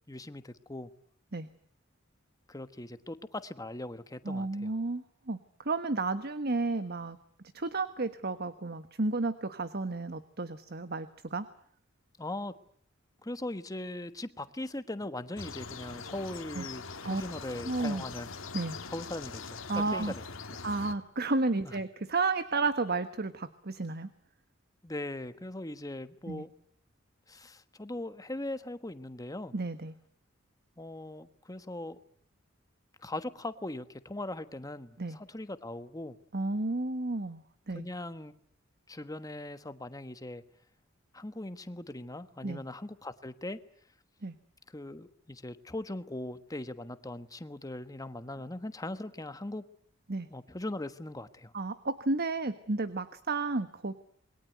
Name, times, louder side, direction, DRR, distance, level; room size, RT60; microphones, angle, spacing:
voice 1, 0.1-0.9 2.5-4.7 12.2-12.5 13.2-18.3 18.9-20.2 20.5-20.6 21.6-21.8 24.8-26.5 27.3-29.5 30.8-32.0 33.0-36.2 37.7-38.3 38.9-40.4 41.1-43.6 44.7-49.6 50.3-51.5, left 1 dB, 20° left, 11 dB, 1.3 m, -40 dB
voice 2, 4.2-5.4 5.6-7.2 7.5-11.5 16.5-16.6 17.0-17.2 17.6-18.0 18.5-18.8 19.7-20.1 20.6-24.1 26.3-26.4 29.5-29.9 35.0-35.2 36.3-37.9 42.4-42.6 44.2-44.3 50.1-50.3 51.5-53.9, right 3 dB, 50° right, 11 dB, 1.3 m, -32 dB
sound 1, 15.4-20.9, left 4 dB, 80° left, 2.0 m, -42 dB
28.0 x 22.0 x 9.3 m, 0.65 s
head